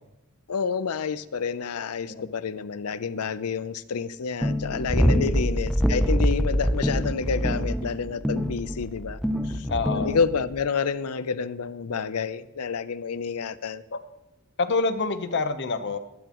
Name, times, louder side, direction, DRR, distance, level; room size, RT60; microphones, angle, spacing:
voice 1, 0.5-9.2 9.4-13.8, left 5 dB, 90° left, 15 dB, 0.6 m, -29 dB
sound 1, 4.4-10.6, equal, ahead, 0.6 m, -25 dB
voice 2, 5.0-5.4 9.7-10.2 13.9-14.0 14.6-16.0, left 3 dB, 55° left, 9 dB, 0.9 m, -27 dB
20.5 x 9.1 x 3.0 m, 0.94 s
head